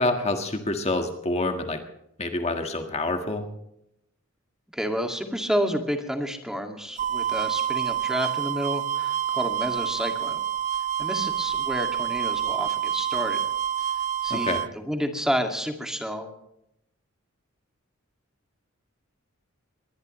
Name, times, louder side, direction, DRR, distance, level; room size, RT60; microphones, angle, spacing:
voice 1, 0.0-1.8 2.2-3.5 14.3-14.6, left 2 dB, 30° left, 5 dB, 1.6 m, -27 dB
voice 2, 4.7-10.4 11.0-13.4 14.2-16.3, equal, 5° right, 4 dB, 2.2 m, -30 dB
sound 1, 7.0-14.7, right 9 dB, 35° right, 0.5 m, -27 dB
22.5 x 19.5 x 3.2 m, 0.80 s
head